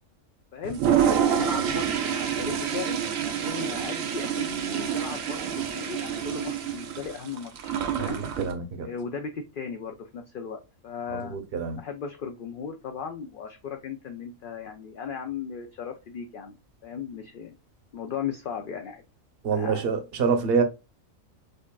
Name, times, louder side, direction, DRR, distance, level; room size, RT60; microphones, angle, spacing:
Toilet flush, 0.6-8.5, right 8 dB, 80° right, 1.1 m, -27 dB
voice 1, 1.2-3.0 3.4-8.2 8.8-11.4 11.8-16.5 16.8-17.5 17.9-19.0 19.5-19.9, left 6 dB, 60° left, 0.5 m, -36 dB
voice 2, 8.0-8.9 11.1-11.8 19.4-20.6, right 5 dB, 50° right, 0.9 m, -26 dB
5.1 x 2.5 x 2.2 m
omnidirectional pair, 1.4 m